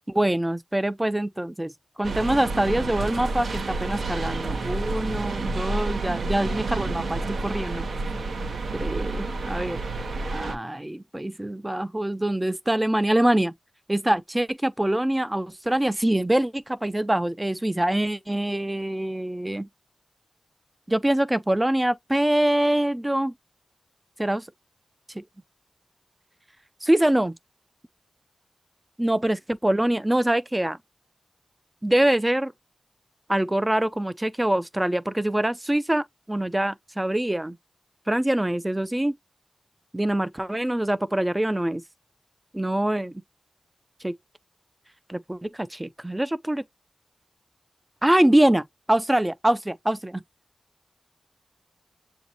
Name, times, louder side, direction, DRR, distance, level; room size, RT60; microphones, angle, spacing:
voice 1, 0.1-1.7 2.0-7.9 8.7-9.8 10.3-13.5 13.9-19.7 20.9-23.3 24.2-24.4 25.1-25.2 26.8-27.3 29.0-30.8 31.8-32.5 33.3-37.6 38.1-39.1 39.9-41.8 42.5-43.2 44.0-44.1 45.1-46.6 48.0-50.2, right 1 dB, 15° right, 0.4 m, -24 dB
sound 1, 2.0-10.5, right 3 dB, 85° right, 0.7 m, -29 dB
7.0 x 2.6 x 2.8 m
cardioid pair, 45°, 0 cm